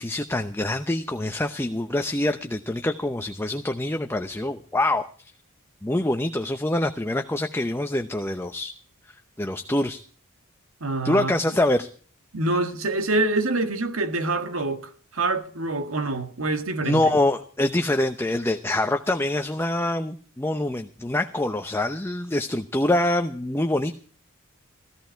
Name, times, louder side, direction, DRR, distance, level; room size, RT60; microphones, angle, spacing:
voice 1, 0.0-5.3 5.8-8.7 9.4-10.0 11.0-11.9 16.8-23.9, left 1 dB, 10° left, 0.8 m, -25 dB
voice 2, 10.8-11.4 12.3-17.0, right 2 dB, 80° right, 1.8 m, -26 dB
16.0 x 14.5 x 4.6 m
head